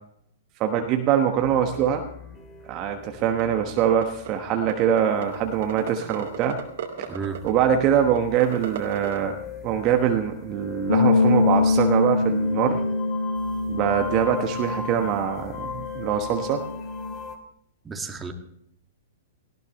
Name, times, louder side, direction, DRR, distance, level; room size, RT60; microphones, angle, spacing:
voice 1, 0.6-2.0 2.7-6.6 7.4-9.4 9.6-12.8 13.7-16.6, right 9 dB, 35° right, 4 dB, 1.3 m, -23 dB
sound 1, 1.3-17.4, left 6 dB, 30° left, 2.5 m, -40 dB
sound 2, 3.4-3.5 3.8-4.3 4.7-4.8 5.0-5.4 5.6-9.2, right 9 dB, 60° right, 2.6 m, -33 dB
voice 2, 7.1-7.4 17.8-18.3, right 5 dB, 15° right, 4 dB, 2.0 m, -32 dB
Bass guitar, 10.9-17.1, left 3 dB, 85° left, 6.8 m, -24 dB
18.5 x 16.5 x 3.2 m, 0.72 s
figure-of-eight pair, 110°, 0 cm